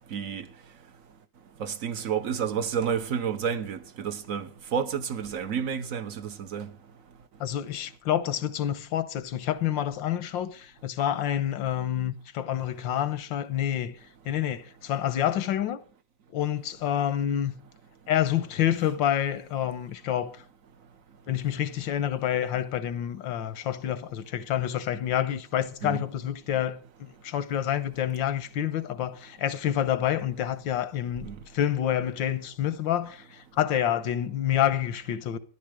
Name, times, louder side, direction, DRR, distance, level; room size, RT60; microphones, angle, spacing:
voice 1, 0.1-0.5 1.6-6.7 25.8-26.0 31.2-31.4, right 7 dB, 55° right, 1.1 m, -30 dB
voice 2, 7.4-14.0 14.2-15.8 16.3-17.6 18.1-20.4 21.3-35.4, left 11 dB, 90° left, 1.7 m, -28 dB
13.5 x 11.5 x 4.9 m
omnidirectional pair, 2.0 m